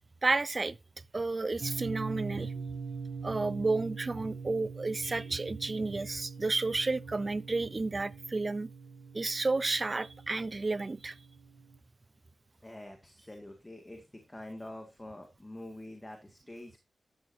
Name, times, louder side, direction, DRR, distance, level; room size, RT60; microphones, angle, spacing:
voice 1, 0.2-0.8 1.1-2.5 3.2-8.7 9.1-11.1, right 3 dB, 30° right, 0.5 m, -31 dB
sound 1, 1.6-11.8, right 5 dB, 65° right, 2.2 m, -43 dB
voice 2, 4.3-4.9 5.2-5.4 12.6-16.8, left 1 dB, 15° left, 1.9 m, -47 dB
12.5 x 9.8 x 2.7 m
wide cardioid pair, 130°, 0 cm